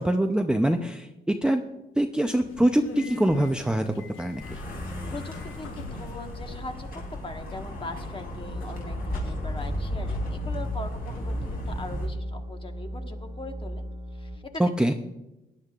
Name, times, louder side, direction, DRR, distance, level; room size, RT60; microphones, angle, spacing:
voice 1, 0.0-1.6 2.0-4.6 14.6-14.9, right 1 dB, 5° right, 5 dB, 0.6 m, -24 dB
Subway metro underground, 2.1-6.4, left 4 dB, 90° left, 1.2 m, -43 dB
sound 1, 4.4-12.1, left 1 dB, 45° left, 3.5 m, -35 dB
voice 2, 5.1-13.8 14.1-14.6, left 2 dB, 25° left, 4 dB, 1.4 m, -40 dB
sound 2, 8.5-14.4, right 1 dB, 20° right, 1.0 m, -36 dB
18.0 x 10.0 x 2.4 m, 0.98 s
cardioid pair, 90°, 20 cm